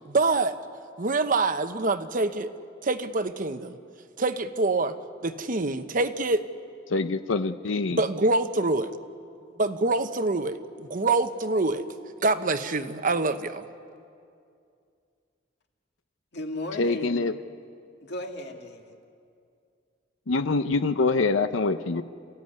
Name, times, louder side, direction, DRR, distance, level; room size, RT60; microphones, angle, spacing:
voice 1, 0.1-0.6 1.0-2.5 2.8-3.8 4.2-4.9 5.2-6.4 7.9-8.9 9.6-11.8 12.2-13.6, right 3 dB, 45° right, 9 dB, 0.9 m, -25 dB
voice 2, 6.9-8.0 16.8-17.3 20.3-22.0, left 3 dB, 85° left, 11 dB, 0.7 m, -25 dB
voice 3, 16.3-17.4 18.0-19.0, left 1 dB, 60° left, 3 dB, 2.2 m, -36 dB
29.0 x 15.0 x 9.6 m, 2.4 s
head